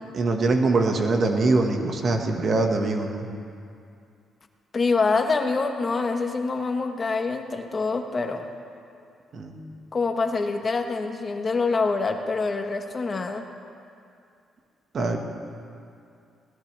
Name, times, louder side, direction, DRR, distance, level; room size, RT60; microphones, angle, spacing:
voice 1, 0.1-3.3 9.3-9.6 14.9-15.2, right 3 dB, 50° right, 3 dB, 1.6 m, -23 dB
voice 2, 4.7-8.5 9.9-13.5, left 4 dB, 35° left, 5 dB, 1.2 m, -25 dB
21.0 x 17.5 x 3.4 m, 2.5 s
cardioid pair, 90°, 0 cm